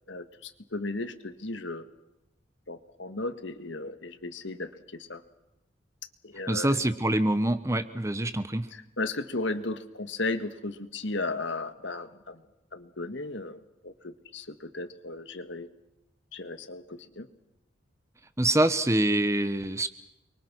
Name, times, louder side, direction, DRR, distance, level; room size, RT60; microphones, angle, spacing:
voice 1, 0.1-1.8 2.7-5.2 6.2-6.8 8.7-12.4 12.7-15.7 16.3-17.3, left 2 dB, 70° left, 9 dB, 1.8 m, -35 dB
voice 2, 6.5-8.7 18.4-19.9, right 1 dB, 15° right, 11 dB, 1.0 m, -25 dB
29.5 x 23.5 x 6.2 m, 0.88 s
head